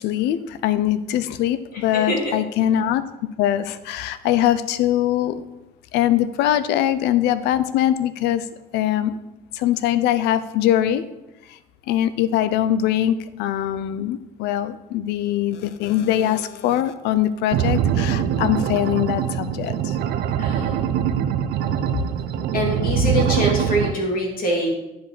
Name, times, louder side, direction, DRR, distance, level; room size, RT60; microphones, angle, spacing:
voice 1, 0.0-3.0 3.4-5.5 5.9-8.4 8.7-9.2 9.5-11.0 11.5-11.6 11.9-20.0, left 12 dB, 85° left, 13 dB, 0.5 m, -22 dB
voice 2, 1.9-2.3 20.4-20.8 22.5-24.7, equal, 60° left, -1 dB, 2.5 m, -24 dB
sound 1, 17.5-23.9, right 9 dB, 75° right, 0.6 m, -23 dB
10.0 x 5.1 x 4.0 m, 0.96 s
cardioid pair, 110°, 17 cm